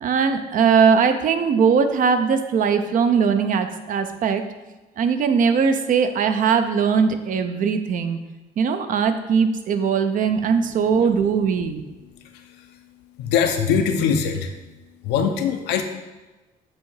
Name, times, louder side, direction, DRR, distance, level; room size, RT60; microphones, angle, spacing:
voice 1, 0.0-4.4 5.0-8.2 8.6-11.8, right 6 dB, 50° right, 8 dB, 0.6 m, -20 dB
voice 2, 12.3-12.7 13.2-14.5 15.0-15.8, left 7 dB, 85° left, 5 dB, 0.7 m, -22 dB
7.5 x 2.8 x 4.6 m, 1.1 s
cardioid pair, 110°, 17 cm